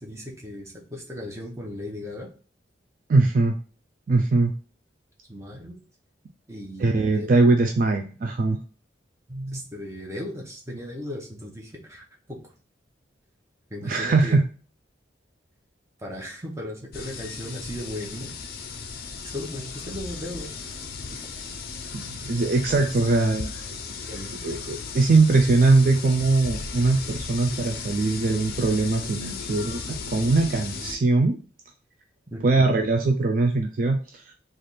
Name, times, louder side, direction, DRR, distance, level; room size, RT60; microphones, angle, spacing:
voice 1, 0.0-2.3 5.3-5.8 6.5-7.3 9.3-12.4 13.7-14.4 16.0-18.3 19.3-20.5 21.1-21.2 22.7-22.8 24.1-24.4 32.3-32.9, left 1 dB, 15° right, -1 dB, 0.8 m, -36 dB
voice 2, 3.1-3.6 4.1-4.5 6.8-8.6 13.8-14.4 21.9-23.6 24.4-31.4 32.4-34.3, right 3 dB, 45° right, 4 dB, 0.3 m, -21 dB
sound 1, 16.9-31.0, left 5 dB, 50° left, 0.5 m, -36 dB
3.3 x 2.5 x 4.0 m, 0.39 s
head